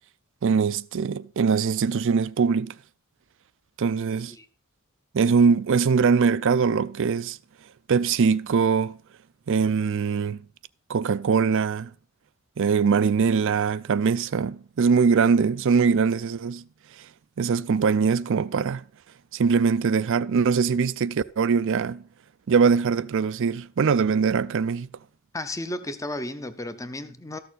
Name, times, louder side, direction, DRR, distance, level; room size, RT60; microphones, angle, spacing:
voice 1, 0.4-2.7 3.8-4.3 5.1-7.4 7.9-9.0 9.5-10.4 10.9-11.9 12.6-16.6 17.4-18.8 19.3-22.0 22.5-24.9, right 5 dB, 60° right, 0.4 m, -22 dB
voice 2, 25.3-27.4, left 1 dB, 15° left, 0.7 m, -33 dB
13.5 x 6.7 x 4.1 m
head